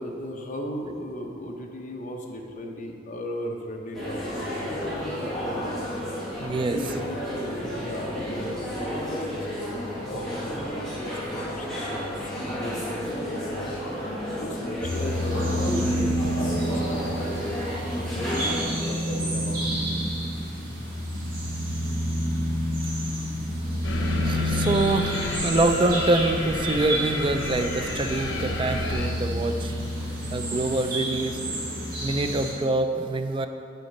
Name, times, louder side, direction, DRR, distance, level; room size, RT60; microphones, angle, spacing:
voice 1, 0.0-4.6 6.3-9.7 10.0-13.9 14.4-15.8 16.4-17.4 17.9-20.0, equal, 40° left, 1 dB, 0.7 m, -37 dB
sound 1, 3.9-18.6, equal, ahead, 1.5 m, -32 dB
voice 2, 6.4-6.8 22.8-22.9 24.2-30.0 30.3-31.4 32.0-33.5, right 2 dB, 25° right, 7 dB, 0.3 m, -25 dB
sound 2, 14.8-32.5, equal, 50° right, 1.7 m, -29 dB
sound 3, 23.8-29.1, left 2 dB, 85° left, 0.8 m, -32 dB
7.9 x 4.0 x 5.3 m, 2.5 s
head